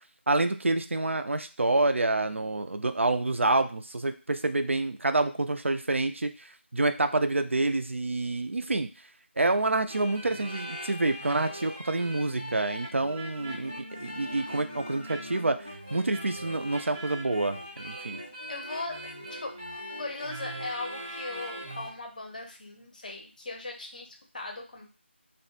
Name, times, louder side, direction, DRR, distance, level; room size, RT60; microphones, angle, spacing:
voice 1, 0.3-8.9 9.4-15.6 15.9-18.2, right 2 dB, 75° right, 9 dB, 0.3 m, -27 dB
sound 1, 9.9-22.0, equal, 15° right, 0.5 m, -40 dB
voice 2, 18.5-19.6 19.9-24.9, left 2 dB, 40° left, 2 dB, 0.5 m, -39 dB
2.3 x 2.1 x 2.9 m, 0.34 s
figure-of-eight pair, 165°, 7 cm